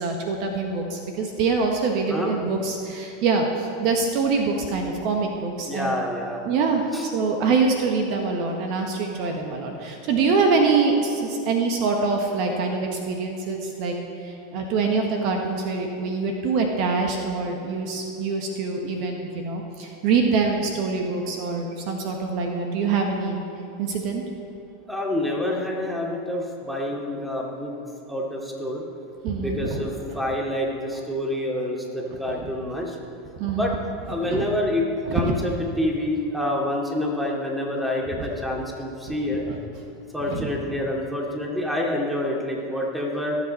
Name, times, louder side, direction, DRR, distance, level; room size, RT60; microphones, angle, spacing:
voice 1, 0.0-6.0 6.4-14.0 14.2-23.4 23.8-24.2 29.2-29.8 33.4-33.7 34.2-34.4 38.2-38.3 39.5-39.6 40.3-40.5, right 4 dB, 55° right, 2 dB, 1.4 m, -24 dB
voice 2, 5.6-6.4 6.9-7.1 24.9-27.8 28.1-28.9 29.4-33.0 33.5-33.8 34.1-39.5 40.1-43.4, left 1 dB, 5° right, -1 dB, 2.5 m, -27 dB
18.0 x 7.3 x 4.3 m, 2.7 s
hypercardioid pair, 90°, 0 cm